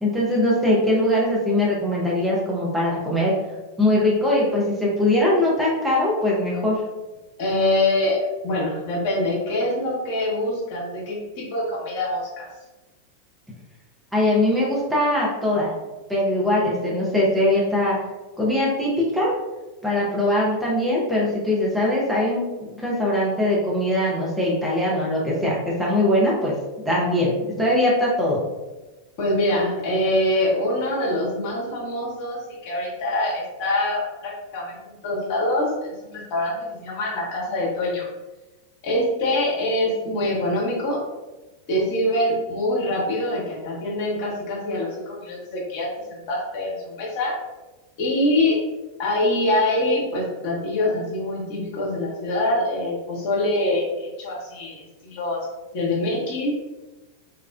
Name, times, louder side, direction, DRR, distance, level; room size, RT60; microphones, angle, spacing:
voice 1, 0.0-3.3 3.8-6.8 14.1-15.7 16.1-18.0 18.4-19.3 19.8-26.5 26.8-28.4, left 1 dB, 5° right, -6 dB, 0.7 m, -21 dB
voice 2, 7.4-12.5 29.2-38.1 38.8-41.0 41.7-47.4 48.0-48.6 49.0-55.4 55.7-56.5, left 1 dB, 45° left, -4 dB, 1.0 m, -24 dB
3.2 x 2.3 x 2.3 m, 1.1 s
figure-of-eight pair, 90°, 0 cm